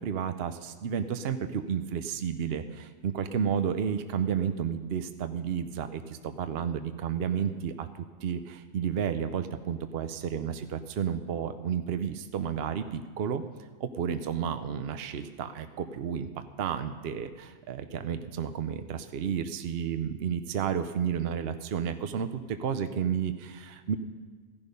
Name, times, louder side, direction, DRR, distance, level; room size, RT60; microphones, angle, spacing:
voice 1, 0.0-13.4 13.8-16.3 16.6-24.0, right 8 dB, 60° right, 9 dB, 0.9 m, -32 dB
15.0 x 11.0 x 5.3 m, 1.5 s
omnidirectional pair, 1.2 m